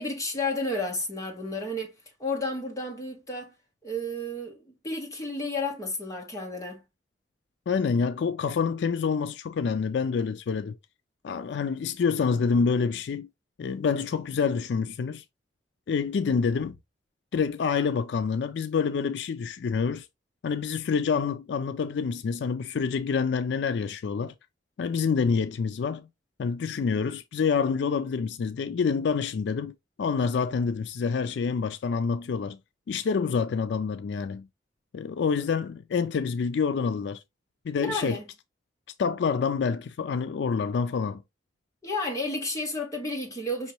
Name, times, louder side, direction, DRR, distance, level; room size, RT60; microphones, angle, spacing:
voice 1, 0.0-1.9 2.2-3.5 3.8-6.8 37.8-38.3 41.8-43.7, left 2 dB, 20° left, 1.3 m, -32 dB
voice 2, 7.7-10.8 11.2-13.3 13.6-15.2 15.9-16.8 17.3-20.1 20.4-24.3 24.8-26.1 26.4-32.6 32.9-34.5 34.9-37.2 37.7-38.2 39.0-41.2, left 5 dB, 70° left, 0.3 m, -27 dB
5.5 x 3.0 x 2.9 m
head